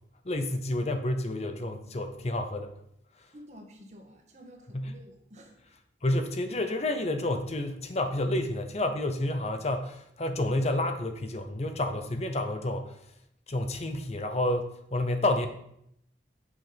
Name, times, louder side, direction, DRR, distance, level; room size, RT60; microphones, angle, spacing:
voice 1, 0.2-2.7 4.7-4.9 6.0-13.0 13.5-15.5, left 1 dB, 35° left, 7 dB, 0.7 m, -29 dB
voice 2, 3.3-5.7, equal, 40° right, 2 dB, 1.5 m, -51 dB
8.1 x 5.9 x 5.1 m, 0.74 s
head